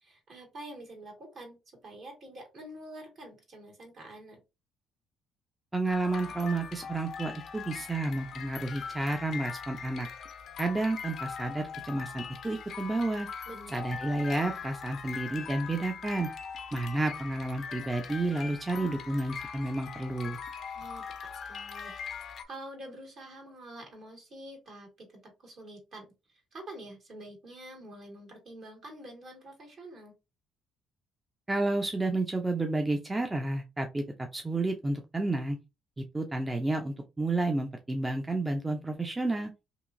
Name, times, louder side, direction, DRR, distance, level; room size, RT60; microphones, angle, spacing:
voice 1, 0.0-4.4 13.5-13.7 20.7-21.0 21.5-25.1 25.4-26.1 26.5-30.1, right 1 dB, 60° right, 0 dB, 1.7 m, -47 dB
voice 2, 5.7-10.1 10.6-13.3 13.7-16.3 16.7-20.4 31.5-34.0 34.3-35.6 36.0-39.5, right 2 dB, 20° right, 4 dB, 0.5 m, -31 dB
sound 1, 5.9-22.4, left 6 dB, 60° left, 0.4 m, -41 dB
2.8 x 2.4 x 2.5 m, 0.26 s
supercardioid pair, 65°, 0 cm